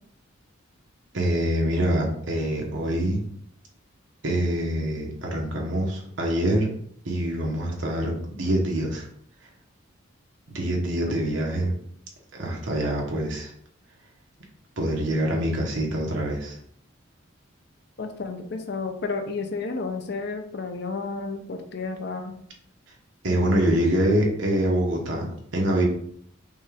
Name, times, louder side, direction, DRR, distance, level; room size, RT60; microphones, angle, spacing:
voice 1, 1.1-3.2 4.2-6.7 7.0-9.1 10.5-11.7 12.3-13.5 14.8-16.6 23.2-25.3 25.5-25.8, right 1 dB, 65° right, -1 dB, 1.1 m, -25 dB
voice 2, 18.0-22.4, left 4 dB, 50° left, 5 dB, 0.5 m, -31 dB
5.3 x 2.4 x 3.4 m, 0.65 s
head